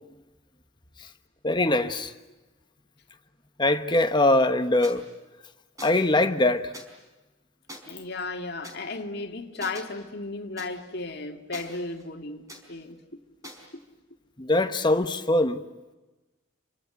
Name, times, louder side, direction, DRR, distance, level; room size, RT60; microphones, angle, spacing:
voice 1, 1.4-2.1 3.6-5.1 5.8-6.7 14.4-15.6, left 2 dB, 20° left, 1.1 m, -22 dB
sound 1, 4.8-5.0 5.8-6.1 6.7-6.8 7.7-7.8 8.6-8.7 9.6-9.8 10.6-10.7 11.5-12.1 12.5-12.6 13.4-13.7, equal, 15° right, 4.8 m, -43 dB
voice 2, 7.9-13.0 13.7-13.8, left 3 dB, 55° left, 2.2 m, -35 dB
27.5 x 25.0 x 8.0 m
head